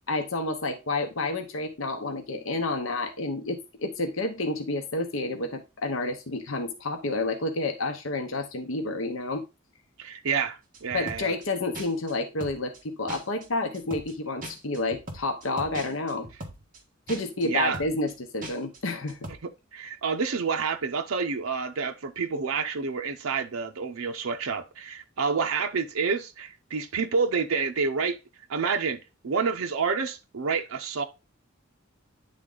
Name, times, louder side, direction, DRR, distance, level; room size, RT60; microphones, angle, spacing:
voice 1, 0.1-9.4 10.9-16.3 17.1-19.2, left 2 dB, 70° left, 0.9 m, -30 dB
voice 2, 10.0-11.3 17.4-17.8 19.4-28.2 28.5-29.0 29.2-31.0, right 5 dB, 85° right, 0.6 m, -28 dB
sound 1, 10.7-11.5 11.7-12.1 12.4-12.8 13.1-13.5 13.7-14.1 14.4-16.8 17.1-17.5 17.7-18.1 18.4-18.8 19.1-19.3, right 1 dB, 40° right, 1.4 m, -40 dB
9.4 x 3.7 x 3.8 m
head